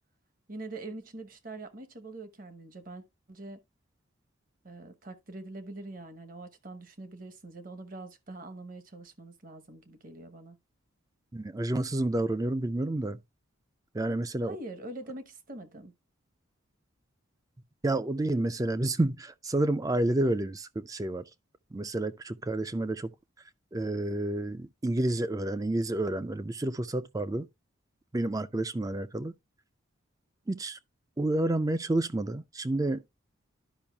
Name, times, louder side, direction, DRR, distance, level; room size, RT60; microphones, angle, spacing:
voice 1, 0.5-3.6 4.6-10.6 14.4-15.9, right 2 dB, 40° right, 0.9 m, -44 dB
voice 2, 11.3-13.2 13.9-14.6 17.8-21.2 21.7-23.1 23.7-27.5 28.1-29.3 30.5-30.8 31.2-33.0, right 2 dB, 15° right, 0.4 m, -29 dB
12.0 x 5.3 x 2.3 m
head